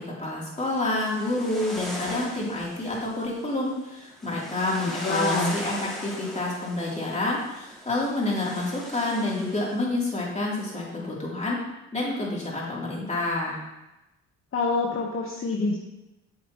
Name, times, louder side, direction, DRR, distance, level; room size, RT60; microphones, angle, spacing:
voice 1, 0.0-11.6 11.9-13.6, left 2 dB, 25° left, -5 dB, 3.1 m, -28 dB
sound 1, 0.6-9.8, equal, ahead, 2.2 m, -39 dB
voice 2, 4.8-5.6 14.5-15.8, left 3 dB, 45° left, -1 dB, 1.2 m, -26 dB
8.9 x 7.1 x 3.0 m, 0.98 s
cardioid pair, 90°, 30 cm